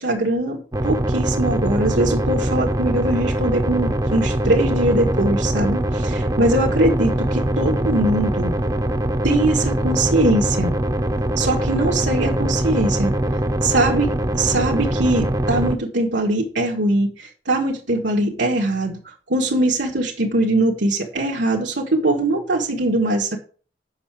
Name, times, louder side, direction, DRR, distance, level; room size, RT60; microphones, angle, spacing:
voice 1, 0.0-8.6 9.2-10.8 11.4-13.1 13.6-19.0 19.3-23.4, right 1 dB, 85° right, -3 dB, 1.7 m, -21 dB
sound 1, 0.7-15.7, right 1 dB, 20° right, 0.7 m, -22 dB
7.7 x 5.8 x 7.5 m, 0.40 s
head